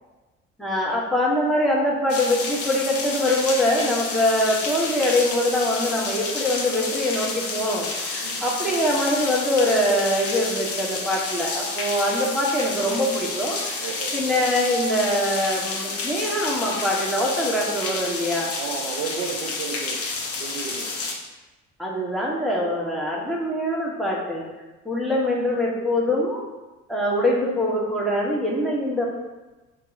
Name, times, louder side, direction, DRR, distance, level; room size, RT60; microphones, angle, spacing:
voice 1, 0.6-18.5 21.8-24.4 24.8-26.5 26.9-29.1, left 1 dB, ahead, -4 dB, 1.3 m, -23 dB
sound 1, 2.1-21.1, left 3 dB, 40° left, 0.9 m, -30 dB
voice 2, 13.8-14.2 18.5-20.0 20.4-20.9, right 6 dB, 75° right, 2 dB, 0.6 m, -33 dB
4.7 x 2.8 x 3.9 m, 1.2 s
figure-of-eight pair, 50°, 36 cm